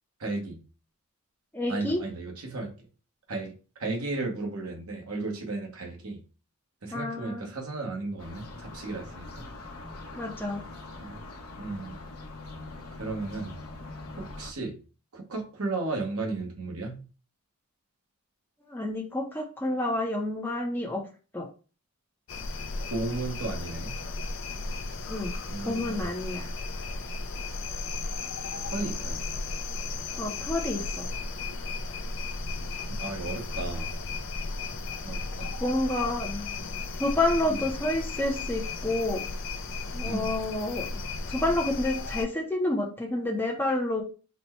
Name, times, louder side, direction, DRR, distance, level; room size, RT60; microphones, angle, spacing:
voice 1, 0.2-0.6 1.7-2.7 3.3-3.5 3.8-6.2 6.8-9.4 11.0-11.2 11.5-12.0 13.0-13.6 14.2-14.8 15.1-17.0 22.9-24.0 25.5-26.1 28.7-29.3 33.0-33.9 35.0-35.5 37.5-37.6 40.0-40.3, right 3 dB, 80° right, 1 dB, 1.1 m, -34 dB
voice 2, 1.5-2.0 6.9-7.4 10.1-10.6 18.7-21.0 21.3-21.5 25.1-25.3 25.7-26.5 30.2-31.1 35.6-36.5 37.0-39.2 39.9-40.9 41.3-44.0, left 1 dB, 10° left, -1 dB, 0.6 m, -29 dB
sound 1, 8.2-14.5, left 2 dB, 80° left, 0.8 m, -43 dB
sound 2, 22.3-42.3, left 3 dB, 60° left, 0.5 m, -35 dB
4.2 x 2.2 x 4.2 m, 0.36 s
head